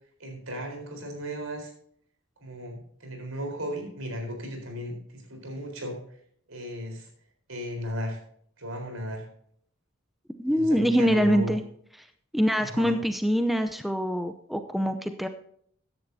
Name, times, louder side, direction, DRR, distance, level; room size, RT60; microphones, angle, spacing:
voice 1, 0.2-1.7 2.4-6.0 6.5-7.1 7.5-8.2 8.6-9.3 10.5-11.5 12.6-13.0, equal, 80° right, 3 dB, 4.1 m, -35 dB
voice 2, 10.4-11.6 12.3-15.3, equal, ahead, 7 dB, 0.5 m, -24 dB
15.0 x 10.5 x 2.7 m, 0.63 s
head